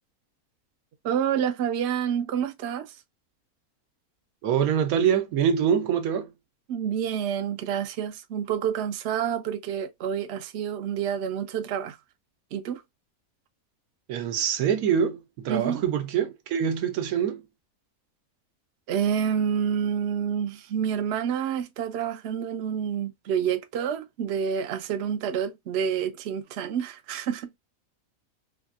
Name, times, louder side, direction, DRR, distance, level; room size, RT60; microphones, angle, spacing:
voice 1, 1.0-3.0 6.7-12.0 12.5-12.8 15.5-15.8 18.9-27.5, right 8 dB, 65° right, 0.7 m, -28 dB
voice 2, 4.4-6.3 14.1-17.4, right 8 dB, 85° right, 1.1 m, -25 dB
3.4 x 2.3 x 2.4 m
omnidirectional pair, 1.5 m